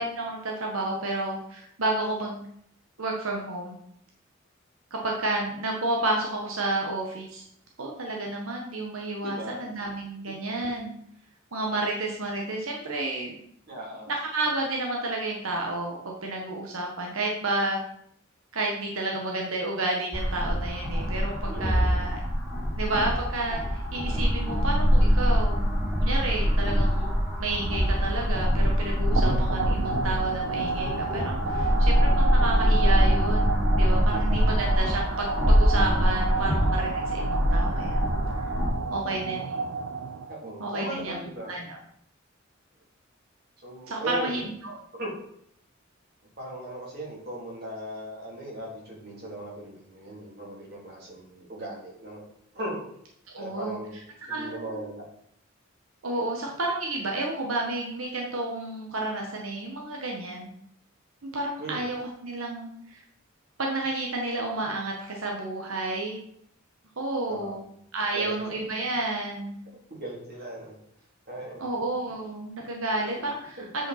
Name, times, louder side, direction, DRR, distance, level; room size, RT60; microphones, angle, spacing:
voice 1, 0.0-2.4 3.0-3.8 4.9-7.4 7.8-10.9 11.5-13.4 14.1-17.8 18.5-22.2 22.8-25.7 26.0-27.1 27.4-38.1 38.9-39.6 40.6-41.2 41.5-41.8 43.9-44.7 53.3-53.8 54.2-54.9 56.0-60.5 61.2-63.0 63.6-66.2 67.0-67.6 67.9-69.6 71.6-73.9, right 2 dB, 90° right, 0 dB, 1.3 m, -31 dB
voice 2, 9.2-9.6 13.7-14.1 21.5-22.0 29.1-29.5 34.1-34.2 40.3-41.5 43.6-44.4 44.9-45.1 46.4-52.2 52.5-52.8 53.4-54.0 54.3-55.0 61.6-61.8 67.3-67.6 68.1-68.4 70.0-70.8 71.3-71.6 72.9-73.0, right 1 dB, 50° right, -4 dB, 3.1 m, -38 dB
sound 1, 20.1-38.7, equal, 10° right, 2.2 m, -24 dB
sound 2, 29.2-40.5, right 4 dB, 70° right, 0.5 m, -31 dB
8.5 x 5.1 x 4.2 m, 0.70 s
head